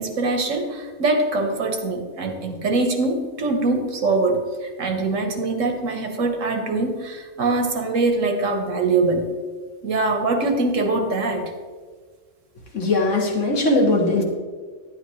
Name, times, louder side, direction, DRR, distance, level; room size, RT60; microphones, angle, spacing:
voice 1, 0.0-9.3 9.8-11.5, right 3 dB, 85° right, 5 dB, 1.5 m, -23 dB
voice 2, 12.7-14.2, left 2 dB, 75° left, 1 dB, 1.8 m, -19 dB
10.5 x 10.5 x 3.1 m, 1.5 s
omnidirectional pair, 1.3 m